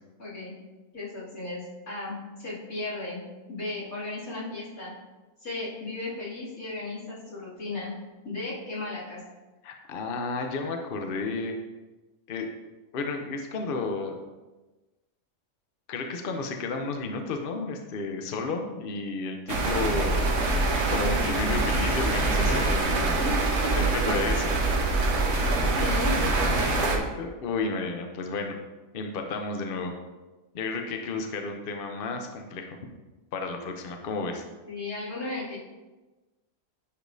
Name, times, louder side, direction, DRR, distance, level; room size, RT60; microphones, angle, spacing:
voice 1, 0.2-0.5 0.9-3.2 3.5-4.9 5.4-7.9 8.2-9.2 23.2-23.8 25.7-26.9 34.7-35.6, left 2 dB, 85° left, -8 dB, 3.0 m, -35 dB
voice 2, 9.6-11.6 12.3-12.5 12.9-14.2 15.9-20.4 20.9-23.1 23.7-24.6 26.8-28.6 28.9-29.9 30.5-32.8 33.3-34.4, left 3 dB, 50° left, 4 dB, 0.7 m, -32 dB
sound 1, 19.5-27.0, right 2 dB, 60° right, 1.2 m, -24 dB
9.8 x 5.1 x 2.6 m, 1.2 s
omnidirectional pair, 1.5 m